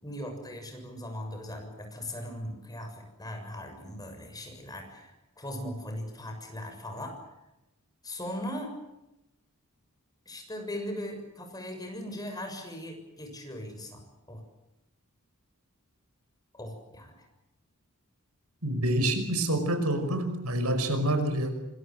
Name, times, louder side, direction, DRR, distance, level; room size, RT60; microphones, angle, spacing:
voice 1, 0.0-7.2 8.0-8.8 10.3-14.4 16.5-17.1, left 1 dB, 15° left, 4 dB, 6.7 m, -39 dB
voice 2, 18.6-21.5, right 1 dB, 90° right, 8 dB, 5.5 m, -27 dB
26.5 x 22.5 x 7.7 m, 0.93 s
head